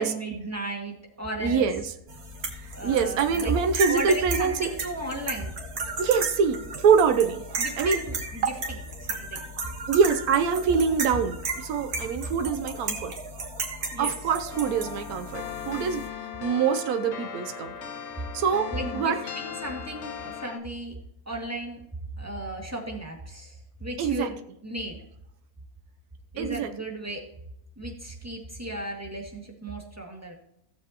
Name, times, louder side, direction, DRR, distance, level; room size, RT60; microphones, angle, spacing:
voice 1, 0.0-1.7 2.7-3.5 3.9-5.5 7.6-9.4 13.9-14.1 18.7-20.9 21.3-21.8 22.2-24.4 24.6-25.0 26.3-27.2 27.8-30.3, right 1 dB, 10° right, 0 dB, 2.0 m, -35 dB
voice 2, 1.4-1.8 2.8-4.7 6.0-7.4 7.8-8.0 8.4-8.5 9.9-13.1 14.0-16.0 16.4-17.7 18.3-18.7 18.9-19.2 24.0-24.3 26.4-26.7, right 6 dB, 70° right, 8 dB, 1.2 m, -24 dB
sound 1, 2.1-16.1, right 3 dB, 90° right, 2.0 m, -34 dB
sound 2, 14.5-20.6, left 7 dB, 55° left, 1.2 m, -38 dB
16.5 x 7.1 x 2.9 m, 0.78 s
omnidirectional pair, 1.6 m